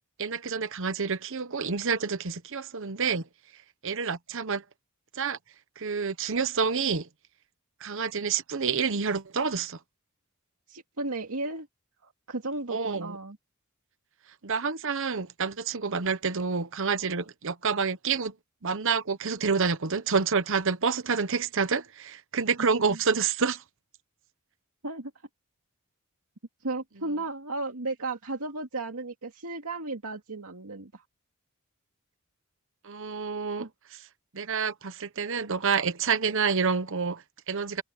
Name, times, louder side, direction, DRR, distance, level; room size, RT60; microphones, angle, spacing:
voice 1, 0.2-3.3 3.8-4.6 5.1-5.4 5.8-7.1 7.8-9.8 12.7-13.2 14.4-18.3 18.6-23.6 32.8-34.0 34.3-37.8, right 5 dB, 60° right, 1.0 m, -28 dB
voice 2, 10.7-11.7 12.0-13.4 22.6-23.0 24.8-25.1 26.6-31.0 33.6-33.7, right 2 dB, 80° right, 2.3 m, -34 dB
head